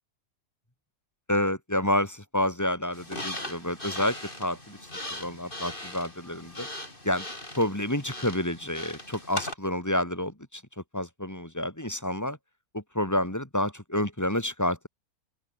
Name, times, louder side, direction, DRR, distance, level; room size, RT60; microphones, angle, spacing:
voice 1, 1.3-4.8 5.1-6.7 7.0-7.2 7.6-10.6 10.9-12.4 12.7-14.9, left 1 dB, 10° left, 3.3 m, -29 dB
sound 1, 2.9-9.6, left 1 dB, 35° left, 6.7 m, -39 dB
open air
omnidirectional pair, 1.5 m